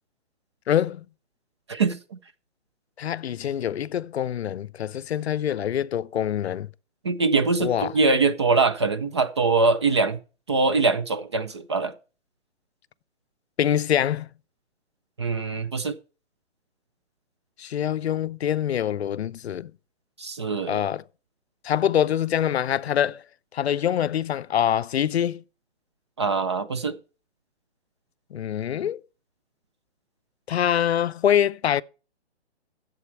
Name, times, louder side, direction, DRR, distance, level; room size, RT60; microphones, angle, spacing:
voice 1, 0.7-1.1 3.0-6.7 7.6-7.9 13.6-14.3 17.6-19.7 20.7-21.0 21.6-23.2 23.5-25.4 28.3-29.0 30.5-31.8, left 10 dB, 65° left, 0.5 m, -25 dB
voice 2, 1.7-2.2 7.0-10.2 10.5-11.9 15.2-16.0 20.2-20.8 26.2-27.0, right 3 dB, 25° right, 0.4 m, -23 dB
11.0 x 7.8 x 4.5 m
hypercardioid pair, 145°, 34 cm